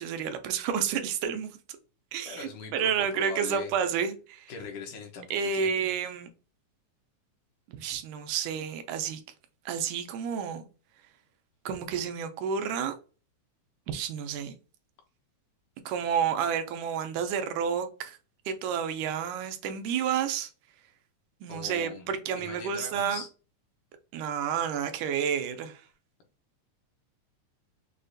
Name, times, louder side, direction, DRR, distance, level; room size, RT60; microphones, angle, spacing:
voice 1, 0.0-1.5 2.1-4.5 5.3-6.3 7.7-9.2 9.7-10.7 11.7-12.9 13.9-14.5 15.9-18.2 18.5-20.5 21.4-23.2 24.1-25.8, right 7 dB, 80° right, 2.1 m, -30 dB
voice 2, 2.3-3.7 4.5-5.9 21.5-22.1 22.4-23.3, left 5 dB, 75° left, 2.3 m, -41 dB
6.4 x 2.4 x 2.6 m
omnidirectional pair, 3.7 m